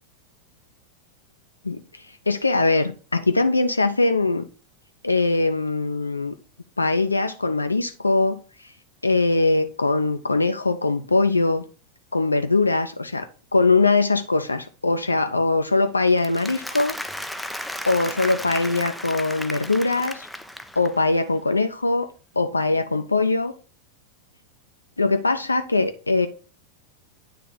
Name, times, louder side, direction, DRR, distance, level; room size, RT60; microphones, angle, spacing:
voice 1, 2.3-4.5 5.0-6.3 6.8-8.4 9.0-11.6 12.1-13.3 13.5-17.0 17.9-20.3 20.8-22.1 22.4-23.5 25.0-26.3, left 3 dB, 80° left, 0.4 m, -21 dB
Applause, 16.1-21.1, left 1 dB, ahead, 0.4 m, -34 dB
9.4 x 3.3 x 3.9 m
figure-of-eight pair, 90°, 0 cm